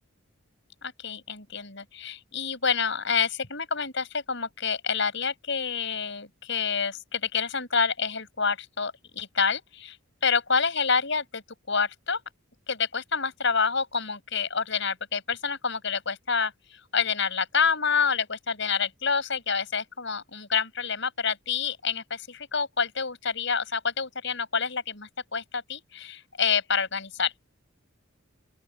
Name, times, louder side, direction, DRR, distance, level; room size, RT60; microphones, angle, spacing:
voice 1, 0.8-10.0 10.2-11.4 11.7-12.2 12.7-27.3, left 5 dB, 60° left, 7.8 m, -28 dB
open air
head